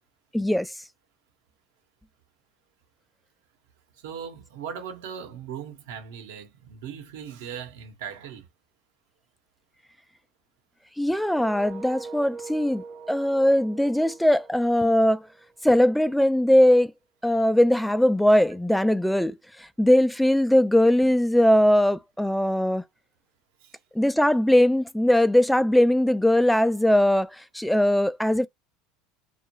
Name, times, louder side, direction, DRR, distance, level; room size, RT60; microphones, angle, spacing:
voice 1, 0.3-0.7 11.0-15.2 15.6-16.9 17.2-22.8 24.0-28.5, left 1 dB, ahead, 0.3 m, -20 dB
voice 2, 3.9-8.5 23.6-23.8, right 8 dB, 75° right, 1.1 m, -39 dB
sound 1, 11.2-16.1, right 5 dB, 30° right, 0.7 m, -43 dB
2.4 x 2.2 x 2.9 m
hypercardioid pair, 95°, 0 cm